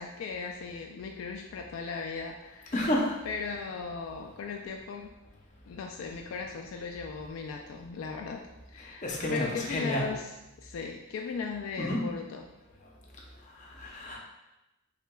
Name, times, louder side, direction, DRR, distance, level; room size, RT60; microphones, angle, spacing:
voice 1, 0.0-2.9 3.2-5.1 5.7-8.4 8.7-12.5, left 5 dB, 70° left, 2 dB, 0.3 m, -38 dB
voice 2, 2.7-3.1 9.0-10.1 11.8-12.0 13.7-14.2, left 1 dB, 35° left, -2 dB, 0.6 m, -30 dB
5.6 x 2.2 x 2.2 m, 0.98 s
head